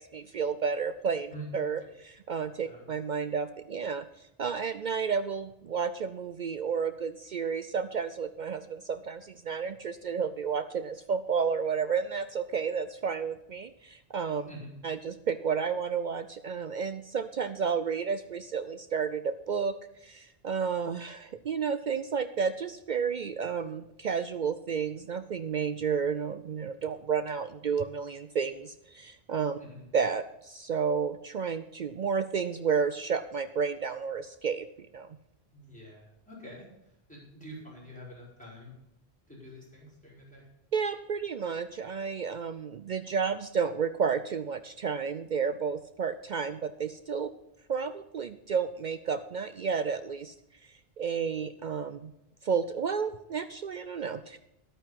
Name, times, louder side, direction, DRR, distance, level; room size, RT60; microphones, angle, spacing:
voice 1, 0.0-4.1 4.4-14.5 14.8-19.7 20.0-29.6 29.9-34.7 34.9-35.1 40.7-47.3 47.7-50.3 51.0-52.1 52.4-54.4, right 6 dB, 55° right, 11 dB, 0.6 m, -31 dB
voice 2, 14.4-14.8 29.5-29.9 35.5-38.7 39.3-40.4, equal, 5° left, -6 dB, 5.1 m, -46 dB
11.5 x 8.9 x 5.8 m, 0.84 s
omnidirectional pair, 1.1 m